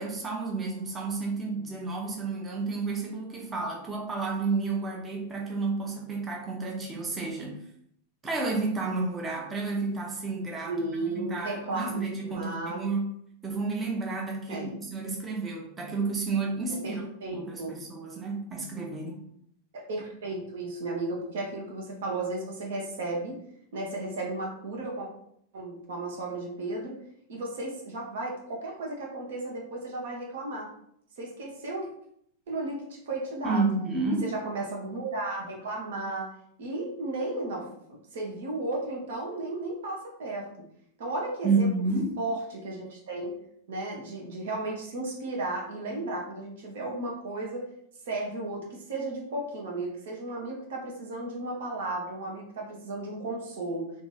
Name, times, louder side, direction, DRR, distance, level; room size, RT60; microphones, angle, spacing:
voice 1, 0.0-7.6 8.2-10.7 11.1-13.1 13.4-17.0 17.3-19.2 33.4-34.3 41.4-42.2, right 3 dB, 20° right, -2 dB, 0.8 m, -30 dB
voice 2, 10.7-12.0 12.3-12.8 14.5-14.8 16.8-17.8 19.7-23.4 23.7-25.1 25.5-27.0 27.3-30.7 31.2-31.9 32.5-33.7 34.2-36.3 36.6-40.5 41.0-41.7 42.2-43.3 43.7-47.7 48.1-53.9, right 2 dB, 60° right, -1 dB, 1.0 m, -34 dB
3.0 x 2.7 x 3.8 m, 0.70 s
figure-of-eight pair, 90°, 0 cm